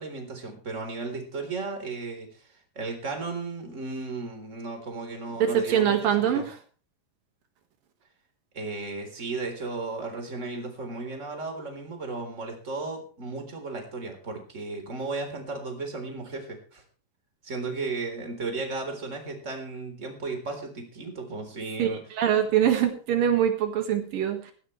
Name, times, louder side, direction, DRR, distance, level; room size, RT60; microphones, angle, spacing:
voice 1, 0.0-2.5 2.8-6.4 8.5-16.8 17.4-22.0, right 3 dB, 20° right, 4 dB, 4.0 m, -35 dB
voice 2, 5.4-6.6 21.8-24.5, right 9 dB, 75° right, 5 dB, 3.4 m, -24 dB
17.0 x 16.5 x 3.3 m, 0.40 s
omnidirectional pair, 4.0 m